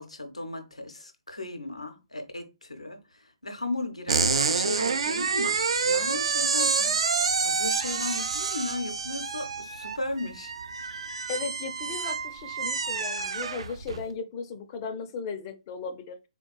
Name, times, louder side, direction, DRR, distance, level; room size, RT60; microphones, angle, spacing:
voice 1, 0.0-7.0 7.4-10.5 11.0-11.1, left 2 dB, 90° left, 0.6 m, -36 dB
sound 1, 4.1-14.0, right 5 dB, 65° right, 0.3 m, -28 dB
voice 2, 11.3-16.3, left 5 dB, 30° left, 0.4 m, -36 dB
3.7 x 2.3 x 2.2 m
figure-of-eight pair, 130°, 3 cm